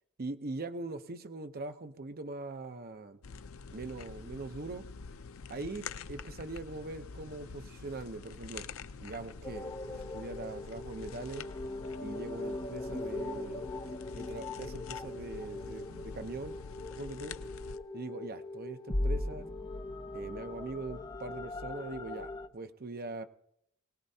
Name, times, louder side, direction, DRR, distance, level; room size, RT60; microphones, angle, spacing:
voice 1, 0.2-3.2 3.7-4.8 5.5-8.7 9.0-11.5 12.0-13.7 14.1-16.6 17.0-17.4 17.9-19.5 20.1-23.2, right 3 dB, 45° right, 9 dB, 0.7 m, -42 dB
sound 1, 3.2-17.8, left 5 dB, 75° left, 0.5 m, -46 dB
sound 2, 9.4-22.5, left 2 dB, 20° left, 0.6 m, -39 dB
21.0 x 18.0 x 2.8 m, 0.73 s
head